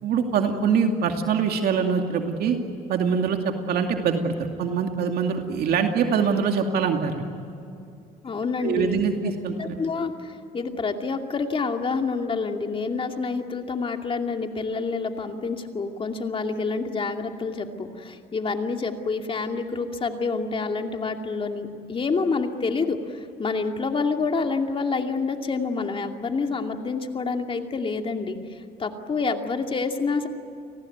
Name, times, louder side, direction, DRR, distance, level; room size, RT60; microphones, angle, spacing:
voice 1, 0.0-2.6 2.9-7.2 8.6-9.8, right 6 dB, 65° right, 4 dB, 2.5 m, -24 dB
voice 2, 8.2-9.1 9.6-28.4 28.8-30.3, left 4 dB, 30° left, 4 dB, 2.6 m, -28 dB
29.5 x 19.5 x 9.4 m, 2.6 s
cardioid pair, 110°, 17 cm